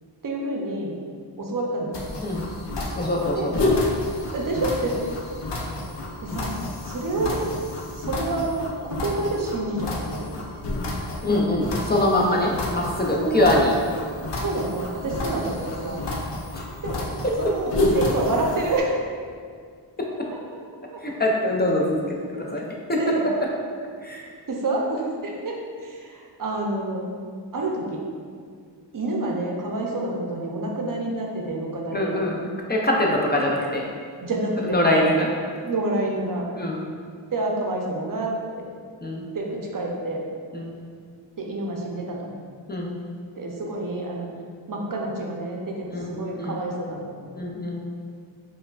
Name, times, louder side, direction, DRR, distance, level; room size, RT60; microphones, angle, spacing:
voice 1, 0.2-0.9 1.4-2.0 3.3-3.5 4.3-5.0 6.2-6.6 6.9-7.4 8.1-10.3 13.2-13.7 14.4-16.0 16.8-17.0 17.4-18.9 20.9-21.0 23.0-23.3 24.5-25.6 25.8-27.0 27.5-28.0 28.9-32.1 34.2-34.8 35.6-36.4 37.3-38.3 39.3-40.2 41.4-42.2 43.4-44.3 44.7-47.0, right 2 dB, 45° right, -1 dB, 0.6 m, -28 dB
sound 1, 1.9-18.8, left 2 dB, 70° left, 0.6 m, -29 dB
voice 2, 3.0-3.7 11.2-13.7 16.6-16.7 20.0-20.1 21.0-22.6 22.9-23.2 24.0-24.2 31.9-32.4 32.7-33.8 34.6-35.3 36.6-36.8 39.0-39.3 40.5-40.8 42.7-43.0 45.9-46.6 47.3-47.8, left 1 dB, 25° left, -2 dB, 0.5 m, -23 dB
4.4 x 2.3 x 2.3 m, 2.1 s
cardioid pair, 45°, 45 cm